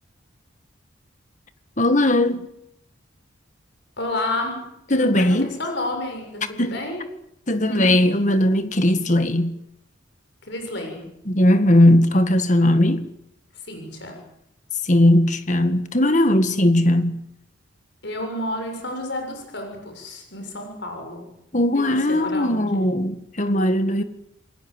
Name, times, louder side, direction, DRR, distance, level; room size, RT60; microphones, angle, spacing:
voice 1, 1.8-2.5 4.9-5.5 6.6-6.8 7.5-9.6 11.3-13.1 14.8-17.2 21.5-24.0, left 1 dB, 35° left, 1.8 m, -18 dB
voice 2, 4.0-4.6 4.9-7.0 7.6-7.9 10.5-11.1 13.6-14.2 18.0-21.3 21.7-21.8 22.1-22.8, left 1 dB, 60° left, 7.1 m, -30 dB
28.0 x 21.0 x 8.0 m
head